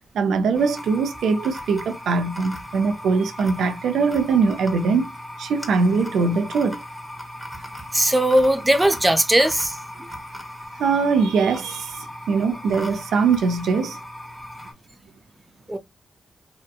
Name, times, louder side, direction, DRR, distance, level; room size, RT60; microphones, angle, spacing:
voice 1, 0.1-5.1 5.4-6.8 10.8-14.0, right 5 dB, 80° right, 0.5 m, -22 dB
sound 1, 0.5-14.7, left 1 dB, ahead, 1.1 m, -37 dB
voice 2, 7.9-9.8 15.7-15.8, right 1 dB, 20° right, 0.5 m, -18 dB
2.9 x 2.1 x 2.3 m
supercardioid pair, 45°, 0 cm